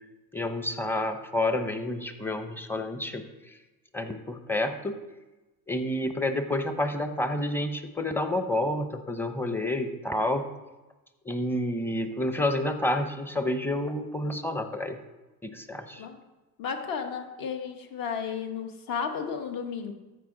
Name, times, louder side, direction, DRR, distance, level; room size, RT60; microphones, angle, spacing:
voice 1, 0.3-3.6 3.9-5.0 5.7-10.5 11.2-15.0 15.4-16.1, left 1 dB, 5° left, 8 dB, 0.8 m, -29 dB
voice 2, 16.6-19.9, left 6 dB, 50° left, 5 dB, 1.5 m, -33 dB
14.0 x 5.2 x 3.9 m, 1.1 s
supercardioid pair, 100°, 42 cm